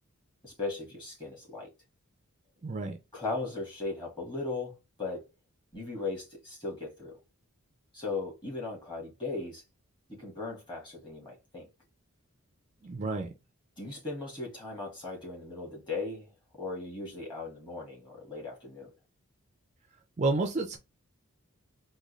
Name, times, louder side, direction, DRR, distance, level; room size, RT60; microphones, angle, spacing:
voice 1, 0.4-1.7 3.1-5.2 5.7-7.2 7.9-9.6 10.1-11.7 13.8-18.9, left 3 dB, 20° left, 1.6 m, -38 dB
voice 2, 2.6-3.0 12.8-13.3 20.2-20.8, right 3 dB, 30° right, 0.4 m, -30 dB
3.7 x 2.2 x 3.0 m
head